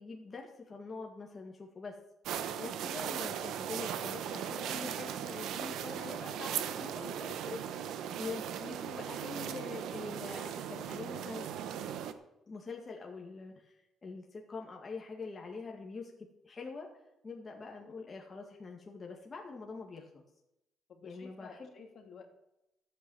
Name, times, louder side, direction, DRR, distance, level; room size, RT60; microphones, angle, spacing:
voice 1, 0.0-2.0 2.6-11.5 12.5-16.1 16.4-16.9 17.2-20.2 21.0-21.7, left 4 dB, 35° left, 1 dB, 2.1 m, -45 dB
sound 1, 2.3-12.1, right 9 dB, 85° right, 1.0 m, -38 dB
voice 2, 20.9-22.2, left 5 dB, 60° left, 3 dB, 2.8 m, -52 dB
12.5 x 8.3 x 7.2 m, 0.87 s
cardioid pair, 90°, 0 cm